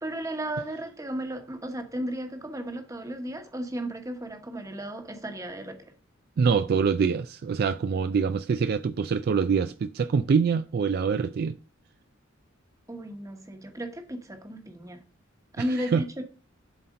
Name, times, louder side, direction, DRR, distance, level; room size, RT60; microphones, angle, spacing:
voice 1, 0.0-5.9 12.9-15.0 15.5-16.2, right 1 dB, 15° right, 1.1 m, -34 dB
voice 2, 6.4-11.6 15.6-15.7 15.9-16.0, right 6 dB, 50° right, 0.3 m, -25 dB
7.6 x 4.2 x 5.1 m
head